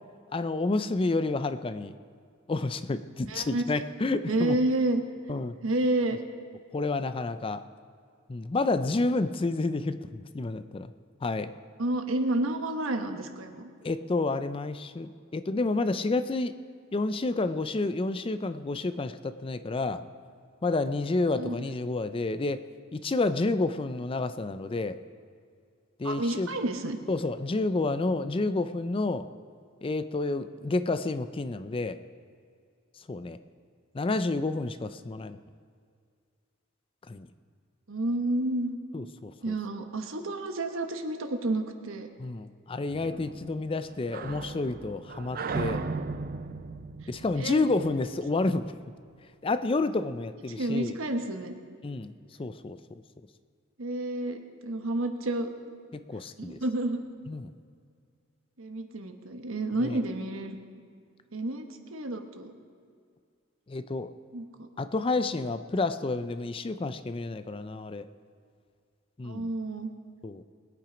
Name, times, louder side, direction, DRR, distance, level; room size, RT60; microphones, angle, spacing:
voice 1, 0.3-1.9 2.5-4.6 5.3-5.6 6.7-7.6 8.3-10.9 11.2-11.5 13.8-16.5 16.9-20.0 20.6-22.6 22.9-25.0 26.0-26.5 27.1-29.3 29.8-32.0 33.1-33.4 33.9-35.4 37.1-37.3 38.9-39.6 42.2-45.8 47.1-48.7 49.4-51.0 51.8-52.1 52.4-53.0 55.9-56.6 57.3-57.5 59.8-60.0 63.7-64.1 64.8-68.1 69.2-69.5 70.2-70.4, left 3 dB, 25° left, 11 dB, 0.4 m, -29 dB
voice 2, 3.3-3.8 4.3-5.0 5.6-6.2 11.8-13.7 21.3-21.6 26.0-27.0 37.9-38.8 39.4-42.1 47.4-47.7 50.6-51.5 53.8-55.5 56.4-57.0 58.6-60.6 61.3-61.6 61.9-62.5 64.3-64.7 69.2-69.9, right 1 dB, 75° right, 6 dB, 1.2 m, -30 dB
sound 1, 42.9-48.4, right 4 dB, 45° right, 0.5 m, -37 dB
20.5 x 8.8 x 5.1 m, 2.2 s
head